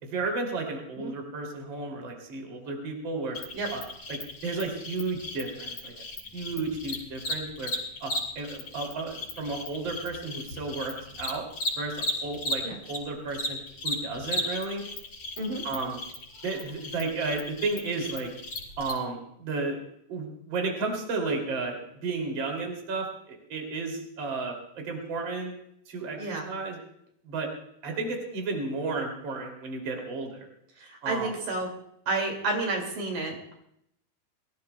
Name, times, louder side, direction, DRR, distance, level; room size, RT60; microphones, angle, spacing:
voice 1, 0.0-3.4 3.7-3.8 4.1-6.0 6.3-7.7 8.0-11.4 11.8-13.6 13.8-14.8 15.6-16.0 16.4-18.3 18.8-19.8 20.1-25.5 25.9-26.8 27.2-27.5 27.8-30.5 31.0-31.3, right 3 dB, 35° right, 1 dB, 2.9 m, -33 dB
Cricket, 3.3-13.0 13.3-18.9, left 1 dB, 45° left, 5.8 m, -35 dB
voice 2, 30.8-31.7 32.1-33.5, right 2 dB, 65° right, 1 dB, 3.8 m, -30 dB
24.0 x 16.0 x 2.2 m, 0.73 s
omnidirectional pair, 4.4 m